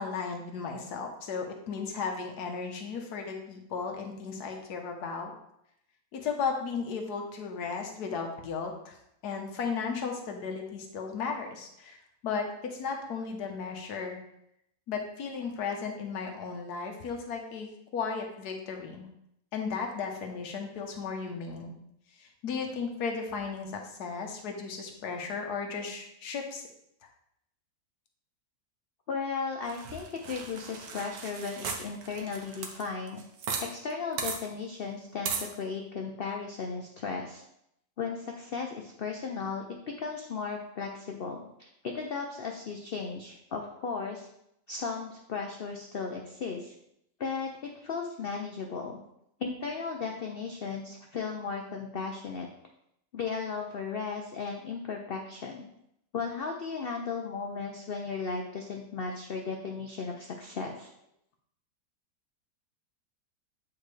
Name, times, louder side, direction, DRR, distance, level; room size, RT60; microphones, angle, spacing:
voice 1, 0.0-5.3 6.1-9.0 9.2-12.0 12.2-14.2 14.9-19.1 19.5-21.8 22.2-26.6, left 5 dB, 70° left, 3 dB, 1.4 m, -35 dB
voice 2, 29.1-33.2 33.7-37.4 38.0-39.6 40.0-44.3 44.7-46.7 47.2-49.0 49.4-52.5 53.1-55.7 56.1-60.9, left 5 dB, 85° left, 2 dB, 0.5 m, -36 dB
sound 1, 29.7-33.7 33.9-34.0 34.2-34.4 35.3-35.5, right 5 dB, 80° right, 1.5 m, -36 dB
8.7 x 4.2 x 3.2 m, 0.78 s
omnidirectional pair, 1.8 m